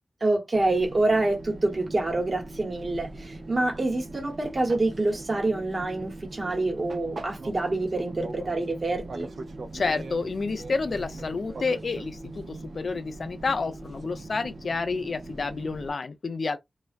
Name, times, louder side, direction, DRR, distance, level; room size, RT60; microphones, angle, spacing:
voice 1, 0.2-9.3, right 2 dB, 45° right, 1.1 m, -26 dB
Fixed-wing aircraft airplane, 0.5-15.9, right 2 dB, 65° right, 0.5 m, -41 dB
voice 2, 9.7-16.6, left 4 dB, 60° left, 0.4 m, -29 dB
2.3 x 2.1 x 2.5 m
cardioid pair, 70°, 0 cm